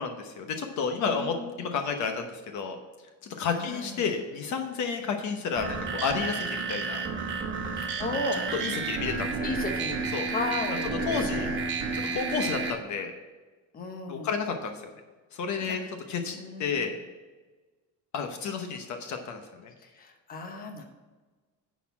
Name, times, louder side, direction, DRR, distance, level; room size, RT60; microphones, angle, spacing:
voice 1, 0.0-2.8 3.4-7.0 8.6-9.3 10.1-10.3 11.1-11.5 11.9-13.1 14.1-14.8 15.3-15.8 16.1-17.0 18.1-19.7, left 5 dB, 55° left, 5 dB, 1.0 m, -31 dB
voice 2, 1.1-1.4 3.5-4.1 7.7-8.4 9.4-11.6 13.7-14.3 15.6-15.9 16.3-16.9 19.8-20.8, left 2 dB, 25° left, 3 dB, 1.0 m, -35 dB
sound 1, 5.6-12.7, right 4 dB, 35° right, 1.1 m, -31 dB
10.0 x 4.2 x 7.1 m, 1.3 s
cardioid pair, 165°, 35 cm